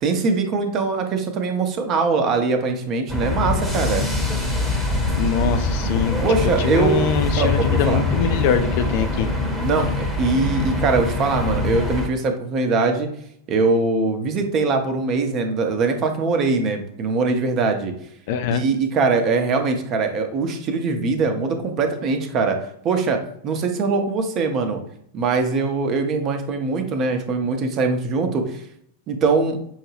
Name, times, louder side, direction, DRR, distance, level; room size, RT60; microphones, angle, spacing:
voice 1, 0.0-4.1 6.2-7.1 7.4-8.0 9.6-13.1 13.5-17.9 18.5-22.6 22.8-24.8 25.1-28.6 29.1-29.6, right 4 dB, 35° right, 5 dB, 0.7 m, -22 dB
sound 1, 3.1-12.1, left 2 dB, ahead, 1.0 m, -23 dB
voice 2, 5.2-6.2 6.4-9.3 18.3-18.6, left 7 dB, 50° left, 8 dB, 0.4 m, -23 dB
5.5 x 2.2 x 3.1 m, 0.69 s
figure-of-eight pair, 90°, 0 cm